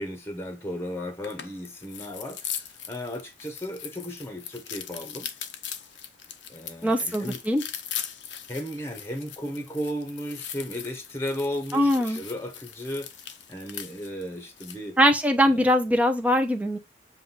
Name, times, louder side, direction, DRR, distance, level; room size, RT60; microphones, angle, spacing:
voice 1, 0.0-5.3 6.5-7.4 8.5-15.0 15.5-15.7, equal, 15° left, 1.1 m, -35 dB
sound 1, 1.2-14.9, left 9 dB, 85° left, 0.9 m, -40 dB
voice 2, 6.8-7.6 11.7-12.2 15.0-16.8, equal, 10° right, 0.8 m, -22 dB
7.7 x 2.6 x 5.5 m
head